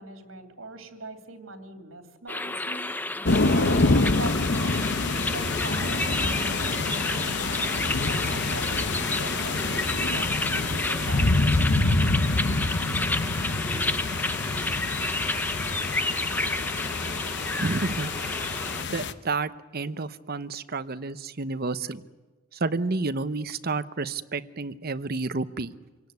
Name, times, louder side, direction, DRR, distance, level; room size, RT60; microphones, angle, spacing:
voice 1, 0.0-2.9 3.3-11.4, right 2 dB, 80° right, 6 dB, 2.9 m, -41 dB
sound 1, 2.3-18.8, left 2 dB, 10° left, 0.7 m, -31 dB
sound 2, 3.3-19.1, left 3 dB, 60° left, 1.1 m, -26 dB
voice 2, 17.6-18.1 18.8-22.0 22.5-25.7, right 3 dB, 50° right, 12 dB, 0.9 m, -30 dB
26.0 x 17.5 x 9.5 m, 1.3 s
head